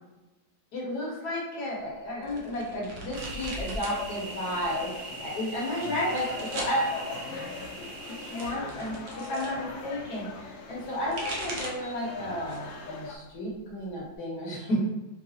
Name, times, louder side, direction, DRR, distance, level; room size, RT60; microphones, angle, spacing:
voice 1, 0.7-7.0 8.2-14.8, left 1 dB, 60° left, -4 dB, 1.5 m, -32 dB
sound 1, 2.2-4.0 4.3-5.0 5.6-6.8 7.8-9.6 10.8-11.9 12.4-12.8 13.2-14.2, right 1 dB, 60° right, 0.8 m, -40 dB
sound 2, 3.1-8.5, right 3 dB, 80° right, 1.4 m, -42 dB
sound 3, 3.9-13.2, left 4 dB, 85° left, 1.3 m, -41 dB
4.7 x 2.3 x 2.7 m, 1.1 s
omnidirectional pair, 2.0 m